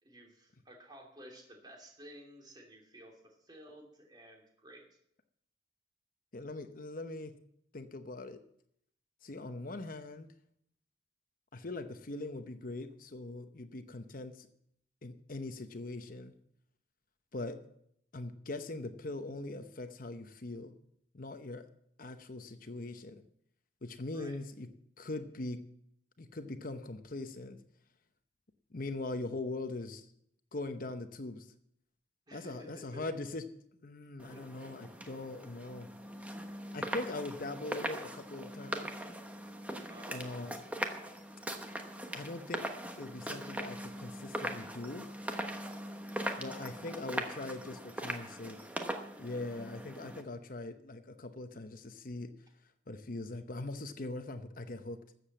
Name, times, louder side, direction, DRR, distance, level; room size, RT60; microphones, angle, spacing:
voice 1, 0.0-4.8 24.1-24.4 32.3-32.7 32.9-33.0 34.3-34.4 39.9-40.3, equal, 25° right, 1 dB, 2.9 m, -53 dB
voice 2, 6.3-7.3 7.7-8.4 9.2-10.3 11.5-14.5 15.0-16.3 17.3-17.6 18.1-20.7 21.1-21.7 22.0-23.2 23.8-24.7 25.0-25.6 26.2-27.6 28.7-30.1 30.5-31.5 32.3-33.4 33.8-35.9 36.7-38.9 40.1-40.6 42.1-42.6 43.0-45.0 46.4-48.6 49.2-52.3 52.9-55.0, left 2 dB, 50° left, 9 dB, 0.9 m, -41 dB
sound 1, 34.2-50.2, right 1 dB, 10° right, 1.1 m, -41 dB
13.5 x 7.7 x 7.3 m, 0.72 s
head